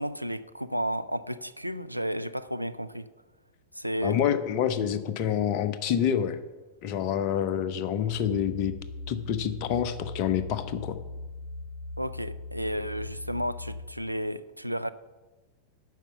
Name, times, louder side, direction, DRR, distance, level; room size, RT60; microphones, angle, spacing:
voice 1, 0.0-3.1 3.7-4.2 12.0-14.9, equal, 90° right, 12 dB, 0.3 m, -32 dB
voice 2, 4.0-6.4 6.8-8.7 9.1-11.0, left 9 dB, 45° left, 12 dB, 0.7 m, -27 dB
sound 1, 8.0-13.8, left 2 dB, 75° left, 1.4 m, -40 dB
9.3 x 5.8 x 6.9 m, 1.2 s
figure-of-eight pair, 90°, 0 cm